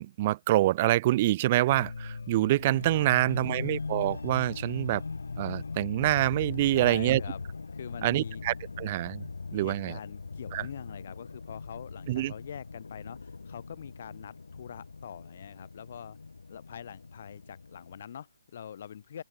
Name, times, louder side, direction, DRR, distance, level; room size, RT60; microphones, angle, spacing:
voice 1, 0.0-5.0 5.4-7.2 8.0-9.2 9.5-10.0 10.5-10.7 12.1-12.3, right 16 dB, 20° right, 0.8 m, -26 dB
sound 1, 1.7-18.0, left 4 dB, 80° left, 3.3 m, -40 dB
voice 2, 3.1-3.8 6.7-7.4 7.7-8.4 9.5-16.2 16.5-19.2, left 8 dB, 35° left, 3.0 m, -44 dB
open air
hypercardioid pair, 175°, 0 cm